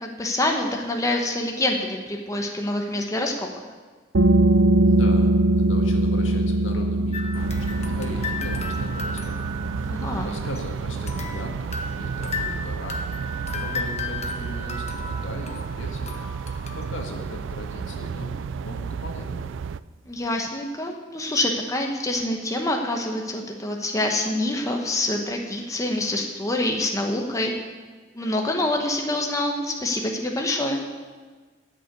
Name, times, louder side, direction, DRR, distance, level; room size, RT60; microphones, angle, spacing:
voice 1, 0.0-3.5 9.9-10.3 20.1-27.5 28.1-30.8, left 1 dB, 15° left, 2 dB, 1.1 m, -26 dB
sound 1, 4.1-15.5, right 1 dB, 90° right, 0.9 m, -24 dB
voice 2, 4.8-9.5 10.1-13.2 13.5-16.1 16.7-19.6, left 1 dB, 75° left, 2 dB, 1.9 m, -38 dB
sound 2, 7.1-10.6 11.1-17.0, left 3 dB, 35° left, 1.3 m, -35 dB
sound 3, 7.3-19.8, right 6 dB, 70° right, 0.3 m, -32 dB
13.0 x 6.7 x 9.2 m, 1.4 s
head